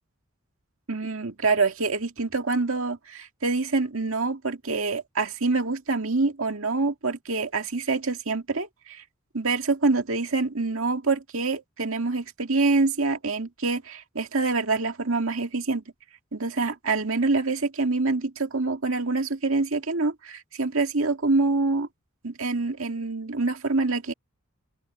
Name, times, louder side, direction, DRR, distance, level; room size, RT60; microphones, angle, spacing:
voice 1, 0.9-9.0 9.3-15.8 16.3-21.9 22.2-24.1, right 3 dB, 70° right, 2.2 m, -26 dB
open air
head